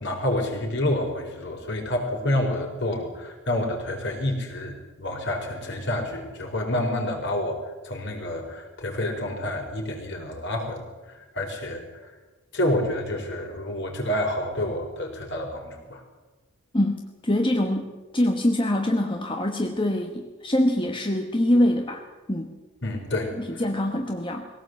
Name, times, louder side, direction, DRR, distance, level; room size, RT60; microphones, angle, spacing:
voice 1, 0.0-12.1 12.5-16.0 22.8-23.6, left 1 dB, 55° left, 2 dB, 4.8 m, -28 dB
voice 2, 16.7-22.5 23.4-24.5, left 1 dB, 20° left, 3 dB, 1.2 m, -24 dB
21.5 x 17.5 x 8.1 m, 1.2 s
head